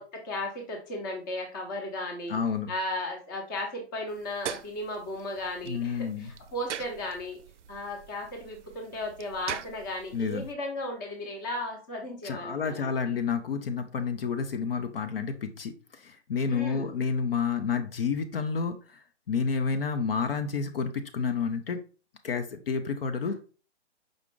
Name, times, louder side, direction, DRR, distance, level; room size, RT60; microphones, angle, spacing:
voice 1, 0.0-2.4 2.7-7.4 7.7-13.2 16.5-16.9 23.2-23.3, left 1 dB, 20° left, 2 dB, 0.6 m, -35 dB
voice 2, 2.3-2.7 5.6-6.3 10.1-10.4 12.2-21.8 22.2-23.3, left 5 dB, 55° left, 8 dB, 0.5 m, -30 dB
sound 1, 4.1-10.5, right 9 dB, 85° right, 0.5 m, -43 dB
5.0 x 2.4 x 3.6 m, 0.37 s
hypercardioid pair, 160°, 35 cm